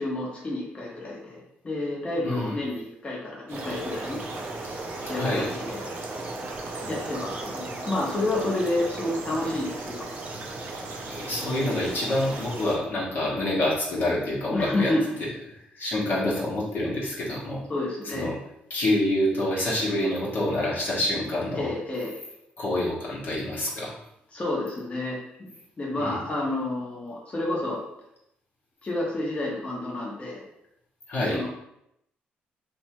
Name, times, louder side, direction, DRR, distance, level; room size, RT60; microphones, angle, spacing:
voice 1, 0.0-4.2 5.1-5.8 6.8-10.1 14.5-15.1 17.7-18.3 21.5-22.1 24.3-25.5 25.8-27.8 28.8-30.4 31.3-31.5, left 2 dB, 30° left, -5 dB, 0.9 m, -29 dB
voice 2, 2.2-2.6 5.1-5.5 11.1-14.9 15.2-15.3 15.7-17.6 18.0-18.4 18.7-21.7 22.6-24.0 26.0-26.2 31.1-31.4, left 1 dB, 60° left, -6 dB, 0.9 m, -27 dB
sound 1, 3.5-12.7, right 2 dB, 30° right, 0.4 m, -37 dB
sound 2, 3.5-12.8, right 3 dB, 90° right, 0.5 m, -43 dB
2.7 x 2.2 x 2.8 m, 0.80 s
cardioid pair, 75°, 4 cm